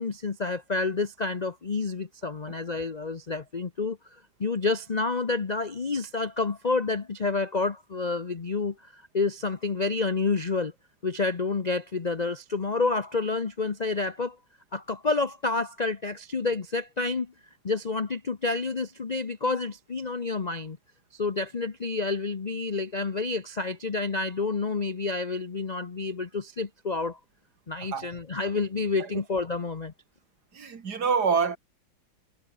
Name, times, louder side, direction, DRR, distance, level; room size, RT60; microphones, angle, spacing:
voice 1, 0.0-4.0 4.4-10.7 11.0-14.4 14.7-17.3 17.6-20.8 21.1-27.2 27.7-29.9, left 3 dB, 50° left, 0.4 m, -29 dB
voice 2, 30.5-31.6, right 5 dB, 50° right, 2.4 m, -26 dB
omnidirectional pair, 2.2 m